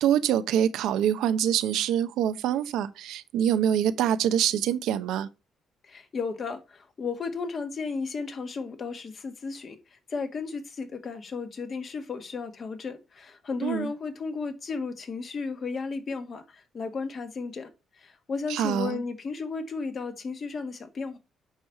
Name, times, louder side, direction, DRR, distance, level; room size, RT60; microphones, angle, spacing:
voice 1, 0.0-5.3 13.6-13.9 18.5-19.0, right 10 dB, 90° right, 0.7 m, -25 dB
voice 2, 5.9-9.8 10.1-17.7 18.0-21.2, left 4 dB, 45° left, 1.6 m, -34 dB
9.1 x 3.1 x 6.6 m
cardioid pair, 90°, 0 cm